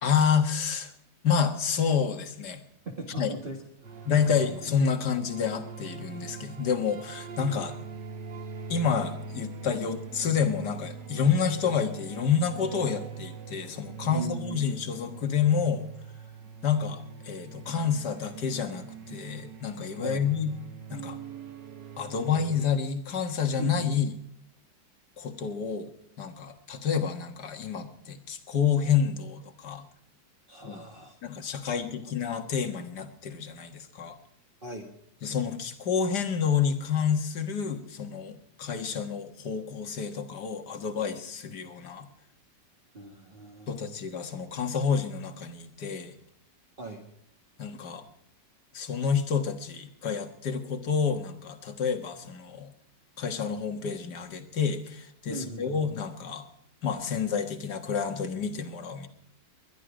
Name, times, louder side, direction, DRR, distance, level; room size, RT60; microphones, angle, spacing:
voice 1, 0.0-0.9 1.2-2.6 3.2-3.3 4.1-7.8 8.7-15.9 16.6-20.5 20.9-21.2 22.0-24.1 25.2-25.9 26.2-29.9 30.6-30.8 31.2-34.2 35.2-42.1 43.7-46.1 47.6-48.0 48.7-52.7 53.2-56.5 56.8-59.1, left 6 dB, 65° left, 8 dB, 2.1 m, -29 dB
voice 2, 2.9-4.1 4.4-4.6 14.1-14.7 20.0-20.3 23.6-23.9 30.5-31.2 31.6-32.1 34.6-34.9 42.9-43.9 46.8-47.0 55.3-55.8, right 3 dB, 30° right, 0 dB, 1.8 m, -39 dB
sound 1, 3.8-22.6, right 5 dB, 75° right, 1.9 m, -43 dB
21.0 x 11.5 x 5.0 m, 0.76 s
omnidirectional pair, 1.9 m